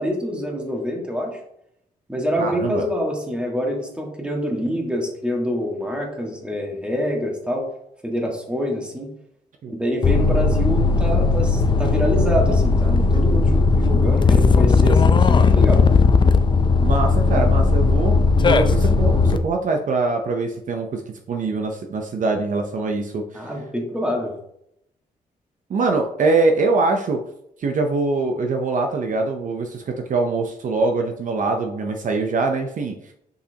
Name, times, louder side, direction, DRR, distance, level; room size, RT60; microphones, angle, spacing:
voice 1, 0.0-1.4 2.1-7.7 8.0-9.1 9.7-15.8 23.3-24.3, equal, 5° right, 0 dB, 1.6 m, -26 dB
voice 2, 2.4-2.8 9.6-9.7 16.8-21.0 21.3-23.5 25.7-27.2 27.6-33.1, right 3 dB, 55° right, 3 dB, 0.7 m, -23 dB
sound 1, 10.0-19.4, left 4 dB, 30° left, 0.4 m, -17 dB
6.5 x 5.7 x 2.9 m, 0.75 s
cardioid pair, 120°, 16 cm